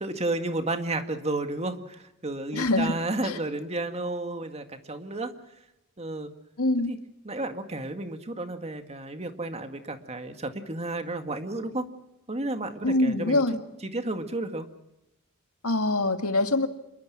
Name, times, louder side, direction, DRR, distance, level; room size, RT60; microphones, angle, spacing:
voice 1, 0.0-5.3 6.0-6.3 6.9-7.0 7.2-11.9 12.3-13.4 13.8-14.7, right 2 dB, 30° right, 7 dB, 2.0 m, -32 dB
voice 2, 2.5-2.9 3.2-3.4 6.6-6.9 12.8-13.6 15.6-16.7, left 2 dB, 85° left, 7 dB, 2.1 m, -24 dB
27.0 x 22.5 x 6.2 m, 0.87 s
head